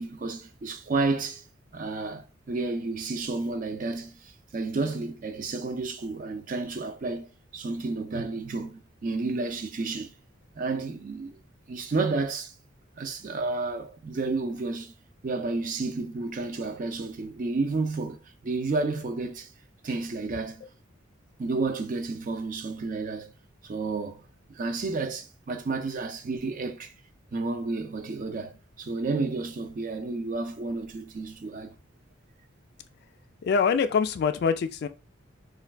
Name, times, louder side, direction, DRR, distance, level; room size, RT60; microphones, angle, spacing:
voice 1, 0.0-1.4 1.7-7.3 7.5-10.1 10.6-11.4 11.7-12.5 13.0-14.9 15.2-19.5 19.8-20.6 21.4-23.3 23.6-24.2 24.5-26.9 27.3-28.5 28.8-31.7, right 3 dB, 45° right, 0.4 m, -31 dB
voice 2, 33.4-34.9, left 6 dB, 55° left, 0.3 m, -24 dB
2.5 x 2.3 x 3.3 m
head